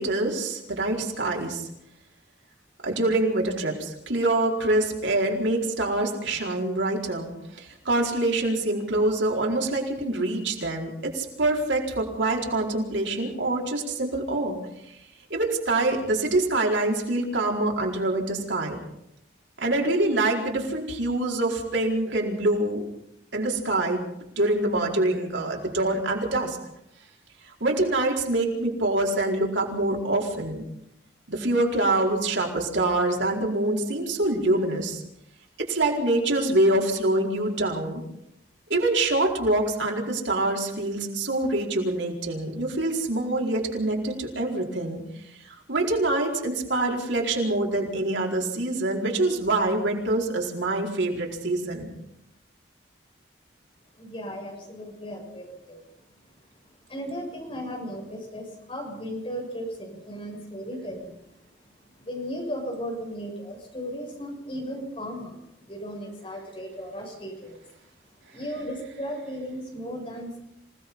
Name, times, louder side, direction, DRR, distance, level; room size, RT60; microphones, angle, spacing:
voice 1, 0.0-1.6 2.8-14.6 14.9-15.0 15.3-18.8 19.6-22.8 23.3-24.0 24.3-26.6 27.5-30.6 31.3-35.0 35.6-38.0 38.7-45.0 45.4-51.9, right 2 dB, 85° right, 0 dB, 4.7 m, -25 dB
voice 2, 54.0-55.8 56.9-61.1 62.0-67.6 68.3-70.4, equal, 30° left, 1 dB, 7.1 m, -36 dB
27.0 x 18.0 x 5.6 m, 0.80 s
head